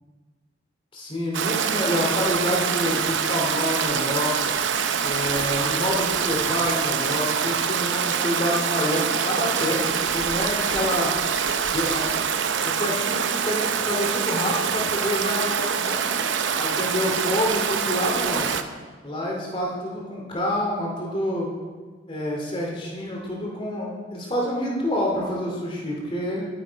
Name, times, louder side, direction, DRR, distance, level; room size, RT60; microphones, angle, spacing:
voice 1, 0.9-4.3 5.0-11.1 11.7-12.1 12.6-16.0 16.6-18.5 19.0-21.5 22.1-26.5, left 1 dB, 30° left, -2 dB, 2.5 m, -27 dB
Stream, 1.3-18.6, right 7 dB, 80° right, 0.6 m, -25 dB
11.0 x 9.8 x 4.6 m, 1.4 s
head